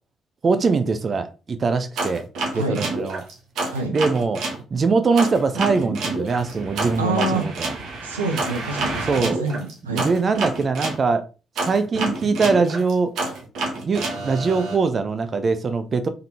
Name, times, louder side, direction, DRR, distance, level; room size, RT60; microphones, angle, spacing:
voice 1, 0.4-2.2 2.5-3.2 3.9-4.4 4.7-7.7 9.1-9.4 9.9-11.3 11.6-13.1 13.8-16.1, right 4 dB, 40° right, 0.5 m, -22 dB
sound 1, 2.0-4.6 5.2-11.0 11.6-14.8, right 2 dB, 60° right, 1.1 m, -28 dB
voice 2, 2.5-2.9 3.7-4.0 7.0-7.5 8.0-10.1, right 2 dB, 85° right, 0.6 m, -27 dB
3.7 x 3.6 x 2.8 m
figure-of-eight pair, 45°, 0 cm